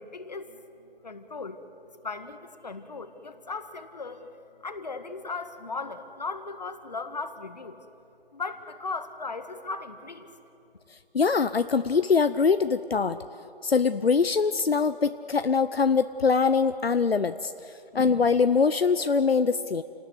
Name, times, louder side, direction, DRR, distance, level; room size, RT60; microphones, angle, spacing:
voice 1, 0.0-1.6 2.0-4.4 4.6-7.8 8.3-10.3, left 3 dB, 45° left, 8 dB, 1.7 m, -37 dB
voice 2, 11.1-13.2 13.6-17.5 17.9-19.8, left 5 dB, 75° left, 11 dB, 0.9 m, -23 dB
29.5 x 19.0 x 7.9 m, 2.8 s
figure-of-eight pair, 170°, 30 cm